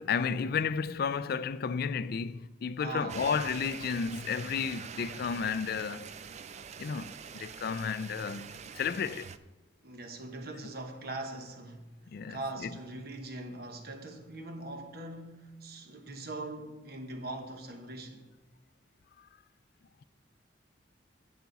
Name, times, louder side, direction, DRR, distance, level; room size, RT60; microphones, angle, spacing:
voice 1, 0.0-6.1 6.8-9.3 12.1-12.7, left 6 dB, 55° left, 0.4 m, -32 dB
voice 2, 2.8-3.3 9.8-11.9 12.3-18.3, right 2 dB, 60° right, 1.2 m, -41 dB
sound 1, 3.1-9.4, right 6 dB, 40° right, 0.4 m, -45 dB
10.5 x 8.3 x 4.0 m
head